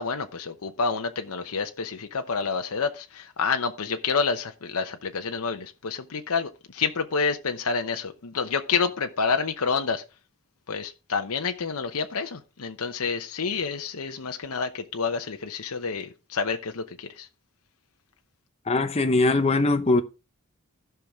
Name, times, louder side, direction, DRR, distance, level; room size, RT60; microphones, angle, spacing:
voice 1, 0.0-10.0 10.7-17.3, left 5 dB, 85° left, 0.8 m, -28 dB
voice 2, 18.7-20.0, left 2 dB, 25° left, 0.8 m, -21 dB
15.0 x 5.8 x 3.6 m
head